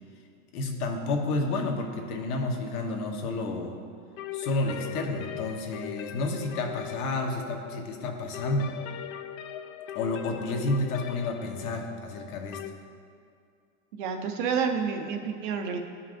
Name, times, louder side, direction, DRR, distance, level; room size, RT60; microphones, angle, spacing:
voice 1, 0.5-3.8 4.3-8.7 9.9-12.6, left 2 dB, 90° left, 2 dB, 1.3 m, -30 dB
sound 1, 4.2-12.7, left 11 dB, 70° left, 0.5 m, -40 dB
voice 2, 13.9-15.8, right 6 dB, 35° right, 5 dB, 0.4 m, -29 dB
14.5 x 5.7 x 2.5 m, 2.4 s
supercardioid pair, 170°, 44 cm